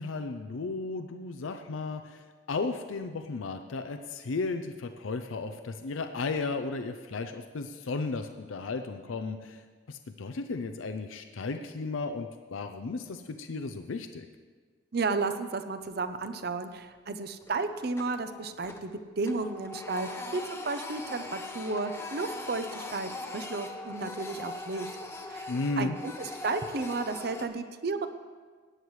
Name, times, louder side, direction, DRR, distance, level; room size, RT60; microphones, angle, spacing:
voice 1, 0.0-2.2 2.5-9.6 9.9-14.3 25.5-26.0, left 3 dB, 90° left, 7 dB, 0.5 m, -34 dB
voice 2, 14.9-25.0 25.3-28.1, right 3 dB, 55° right, 10 dB, 0.6 m, -33 dB
Printer, 15.8-16.5 16.8-17.0 17.4-19.0 19.2-27.4, left 2 dB, 15° left, 0.8 m, -41 dB
17.5 x 9.6 x 3.2 m, 1.5 s
head